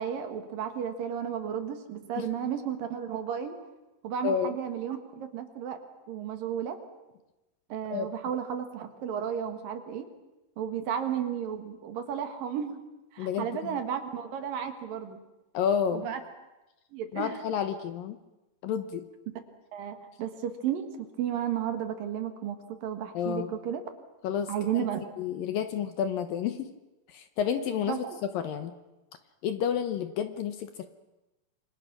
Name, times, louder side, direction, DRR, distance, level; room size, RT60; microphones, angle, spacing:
voice 1, 0.0-3.6 4.0-5.8 6.1-6.8 7.7-10.1 10.6-12.8 13.1-15.2 15.9-16.2 16.9-17.4 19.3-19.4 19.7-23.8 24.5-25.0 27.9-28.2, right 9 dB, 60° right, 7 dB, 3.1 m, -33 dB
voice 2, 4.2-4.6 7.9-8.1 13.2-13.8 15.5-16.1 17.1-18.2 18.6-19.1 23.1-23.5 24.2-24.9 25.2-26.7 27.1-28.0 28.3-28.8 29.4-30.9, left 8 dB, 70° left, 9 dB, 2.4 m, -30 dB
27.5 x 25.0 x 6.1 m, 1.0 s
omnidirectional pair, 4.8 m